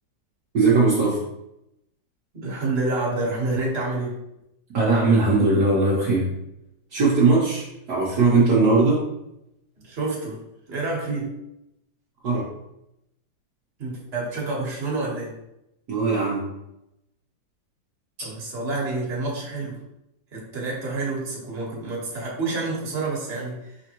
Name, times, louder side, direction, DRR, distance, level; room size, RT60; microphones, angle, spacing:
voice 1, 0.5-1.2 4.7-6.3 6.9-9.1 12.2-12.5 15.9-16.5, right 3 dB, 60° right, -6 dB, 1.3 m, -19 dB
voice 2, 2.3-4.2 9.8-10.4 10.7-11.3 13.8-15.3 18.2-19.8 20.3-23.8, right 3 dB, 35° right, -4 dB, 1.3 m, -28 dB
5.2 x 3.4 x 2.9 m, 0.86 s
omnidirectional pair, 2.0 m